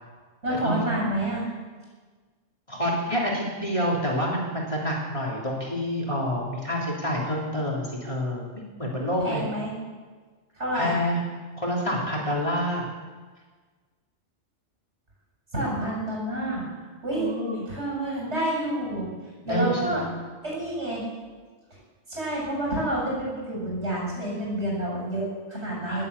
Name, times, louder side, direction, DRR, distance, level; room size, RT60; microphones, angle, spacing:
voice 1, 0.4-1.5 9.2-9.7 10.6-11.0 15.5-16.6 17.0-17.3 17.7-19.1 19.5-20.1 20.4-21.0 22.1-26.0, right 1 dB, 65° right, -4 dB, 7.6 m, -28 dB
voice 2, 2.7-8.5 8.8-9.4 10.7-11.2 11.6-12.9 17.1-17.6 19.5-20.1 25.8-26.0, equal, 25° left, -4 dB, 3.3 m, -27 dB
20.0 x 8.4 x 8.3 m, 1.4 s
omnidirectional pair, 1.3 m